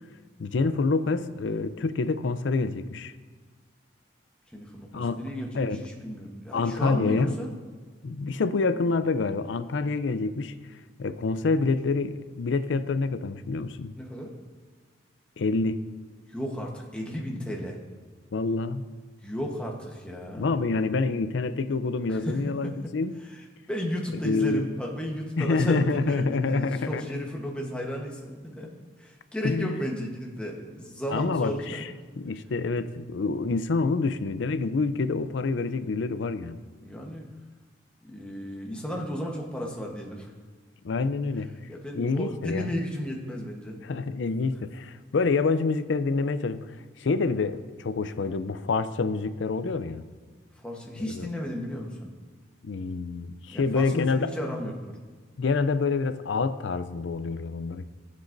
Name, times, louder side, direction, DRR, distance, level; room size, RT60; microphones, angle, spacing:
voice 1, 0.4-3.1 4.9-5.2 5.5-5.9 6.5-7.4 8.0-10.6 11.0-13.9 15.4-15.8 18.3-18.9 20.4-23.2 24.2-24.7 25.4-27.0 29.4-29.8 31.1-31.8 32.2-36.6 40.8-41.5 41.9-42.7 43.8-46.7 47.0-50.0 51.1-51.3 52.6-54.3 55.4-57.9, left 4 dB, 75° left, 12 dB, 0.5 m, -27 dB
voice 2, 4.5-7.5 14.0-14.3 16.3-17.8 19.2-20.6 22.1-22.7 23.2-28.7 29.0-31.8 36.8-37.3 38.0-40.3 41.7-43.8 50.6-52.1 53.5-54.7, equal, 5° left, -1 dB, 1.0 m, -34 dB
14.5 x 7.6 x 2.6 m, 1.4 s
head